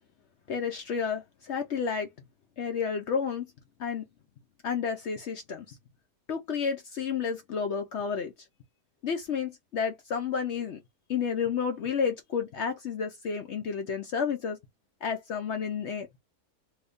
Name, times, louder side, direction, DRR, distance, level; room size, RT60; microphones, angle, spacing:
voice 1, 0.5-2.1 2.6-3.5 3.8-4.1 4.6-5.8 6.3-8.3 9.0-10.8 11.1-14.6 15.0-16.2, left 6 dB, 65° left, 0.7 m, -31 dB
2.8 x 2.6 x 3.4 m
omnidirectional pair, 1.7 m